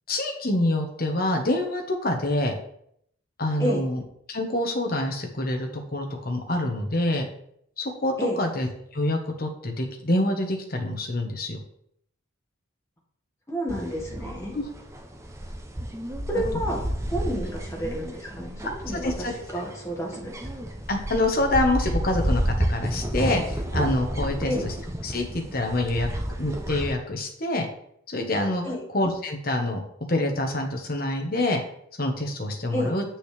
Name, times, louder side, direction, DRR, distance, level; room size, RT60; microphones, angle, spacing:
voice 1, 0.1-2.5 3.4-4.0 4.3-7.3 7.8-8.7 8.9-11.6 14.5-14.6 19.0-19.3 20.9-24.7 25.0-26.1 26.4-27.7 28.1-28.6 28.9-29.8 30.1-31.6 32.0-33.0, left 1 dB, 45° left, 2 dB, 1.3 m, -26 dB
voice 2, 13.5-14.5 16.3-20.4 24.5-24.6 28.6-28.8 32.7-32.9, equal, 15° left, -3 dB, 1.8 m, -30 dB
sound 1, 13.7-26.9, right 1 dB, 15° right, 0.7 m, -31 dB
8.3 x 6.2 x 3.4 m, 0.70 s
head